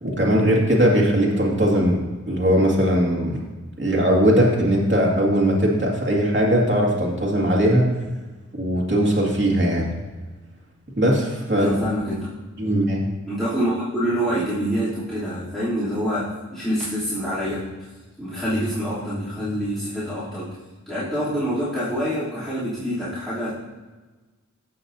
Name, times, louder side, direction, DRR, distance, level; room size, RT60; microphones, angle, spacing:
voice 1, 0.0-3.4 3.8-7.9 8.5-9.9 10.9-11.7 12.6-13.1, equal, 40° right, -4 dB, 2.1 m, -19 dB
voice 2, 11.5-12.3 13.3-17.6 18.2-20.5 20.9-23.5, equal, ahead, -14 dB, 3.0 m, -26 dB
15.0 x 5.9 x 2.7 m, 1.3 s
wide cardioid pair, 55°, 30 cm